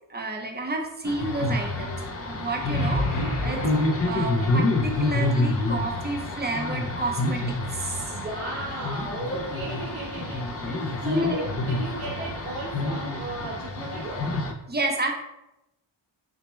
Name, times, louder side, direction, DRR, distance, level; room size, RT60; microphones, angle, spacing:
voice 1, 0.1-3.1 3.4-3.6 4.1-8.1 11.0-11.4 14.7-15.1, right 2 dB, 20° right, 2 dB, 0.5 m, -30 dB
sound 1, 1.0-14.5, left 2 dB, 35° left, 0.4 m, -28 dB
sound 2, 2.7-4.8, left 2 dB, 85° left, 1.1 m, -29 dB
voice 2, 3.4-3.9 8.1-14.3, right 2 dB, 85° right, -5 dB, 1.2 m, -35 dB
6.0 x 2.1 x 3.1 m, 0.93 s
wide cardioid pair, 160°, 47 cm